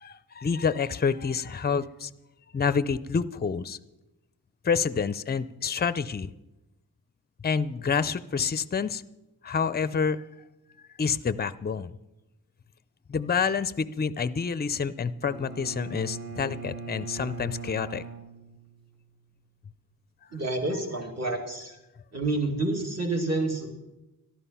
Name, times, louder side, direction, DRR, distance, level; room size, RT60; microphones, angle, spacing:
voice 1, 0.0-2.1 2.5-3.8 4.6-6.3 7.4-9.0 9.4-10.2 11.0-11.9 13.1-18.0, left 6 dB, 25° left, 15 dB, 0.4 m, -28 dB
Bowed string instrument, 15.2-19.1, right 3 dB, 65° right, 2.2 m, -40 dB
voice 2, 20.3-21.8 22.1-23.7, right 2 dB, 45° right, 2 dB, 2.4 m, -29 dB
13.0 x 11.5 x 5.6 m, 0.98 s
wide cardioid pair, 95°, 37 cm